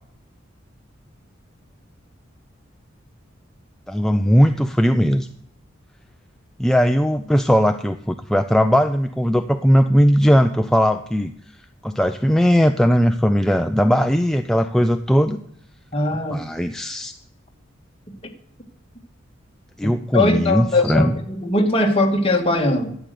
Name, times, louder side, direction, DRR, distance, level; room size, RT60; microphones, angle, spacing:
voice 1, 3.9-5.3 6.6-11.3 11.8-15.4 16.3-17.1 19.8-21.2, equal, ahead, 7 dB, 0.4 m, -18 dB
voice 2, 15.9-16.4 19.8-23.0, left 2 dB, 30° left, 2 dB, 1.8 m, -20 dB
12.0 x 7.9 x 6.8 m, 0.68 s
head